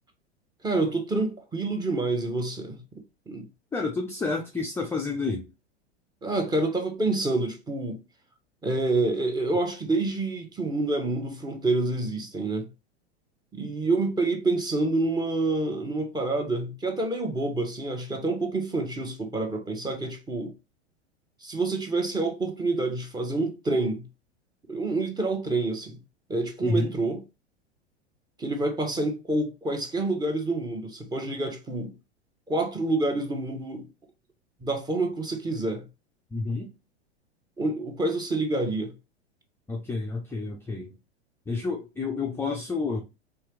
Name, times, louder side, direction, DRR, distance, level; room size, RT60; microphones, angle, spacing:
voice 1, 0.6-2.8 3.3-3.5 6.2-8.0 8.6-12.7 13.5-20.5 21.4-24.0 24.7-26.0 26.3-27.2 28.4-31.9 32.5-33.9 34.6-35.8 37.6-38.9, right 2 dB, 10° right, 1.1 m, -27 dB
voice 2, 3.7-5.5 26.6-26.9 36.3-36.7 39.7-40.9 41.5-43.0, left 3 dB, 5° left, 0.6 m, -29 dB
4.6 x 3.5 x 3.3 m
figure-of-eight pair, 95°, 34 cm